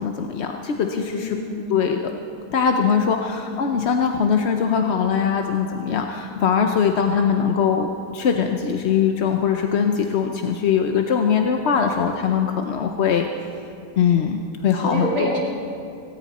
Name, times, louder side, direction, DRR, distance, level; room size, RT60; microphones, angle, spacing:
voice 1, 0.0-1.4 1.7-2.1 2.5-13.3 14.0-14.4 14.6-15.4, left 7 dB, 55° left, 4 dB, 0.8 m, -21 dB
voice 2, 0.8-1.8 2.6-3.2 14.8-15.4, right 1 dB, 65° right, -4 dB, 4.0 m, -29 dB
17.5 x 17.5 x 4.2 m, 2.6 s
omnidirectional pair, 1.8 m